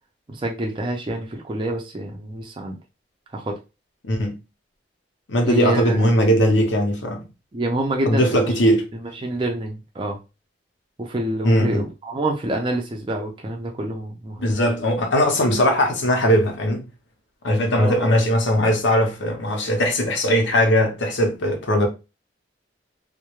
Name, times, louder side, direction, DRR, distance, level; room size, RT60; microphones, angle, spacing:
voice 1, 0.3-2.8 3.3-3.6 5.5-6.0 7.5-8.6 8.9-10.2 11.0-14.5 17.8-18.1, right 1 dB, 25° right, 0.4 m, -27 dB
voice 2, 4.0-4.4 5.3-7.3 8.1-8.9 11.4-11.9 14.4-16.8 17.4-21.9, equal, 85° left, 0.7 m, -19 dB
2.3 x 2.1 x 3.0 m
head